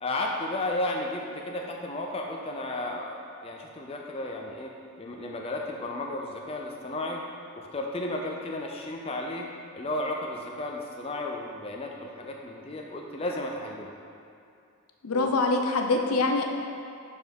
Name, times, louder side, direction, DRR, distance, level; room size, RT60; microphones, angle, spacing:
voice 1, 0.0-4.7 5.0-7.2 7.6-9.5 9.7-13.9 15.1-15.4, left 1 dB, 25° left, 0 dB, 0.4 m, -33 dB
voice 2, 15.0-16.4, left 3 dB, 85° left, 3 dB, 0.6 m, -24 dB
6.9 x 4.1 x 5.1 m, 2.5 s
head